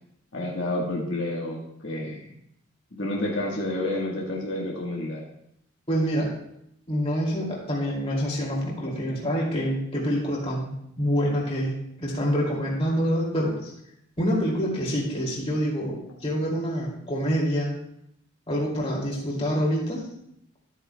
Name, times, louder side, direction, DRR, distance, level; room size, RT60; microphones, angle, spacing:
voice 1, 0.3-2.2 2.9-5.2, left 1 dB, 70° left, -3 dB, 1.4 m, -29 dB
voice 2, 5.9-6.3 6.9-13.7 14.2-17.7 18.5-20.0, equal, 30° left, -4 dB, 2.4 m, -26 dB
13.0 x 8.5 x 2.2 m, 0.76 s
head